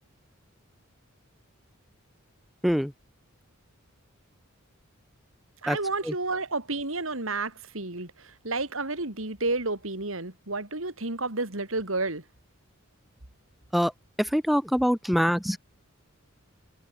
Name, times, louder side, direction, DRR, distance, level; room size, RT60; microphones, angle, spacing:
voice 1, 5.6-12.2, right 3 dB, 65° right, 3.8 m, -31 dB
voice 2, 14.2-15.6, equal, ahead, 1.3 m, -24 dB
head